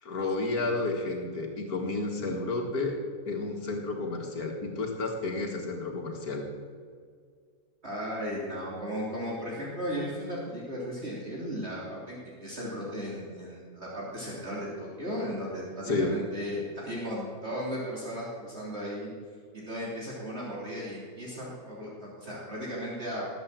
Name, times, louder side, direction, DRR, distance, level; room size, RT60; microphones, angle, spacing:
voice 1, 0.0-3.0 3.3-6.5 15.8-16.1, left 3 dB, 75° left, 1 dB, 2.3 m, -31 dB
voice 2, 7.8-19.1 19.5-23.3, equal, 45° right, -5 dB, 3.4 m, -36 dB
20.0 x 8.0 x 7.6 m, 2.1 s
omnidirectional pair, 1.6 m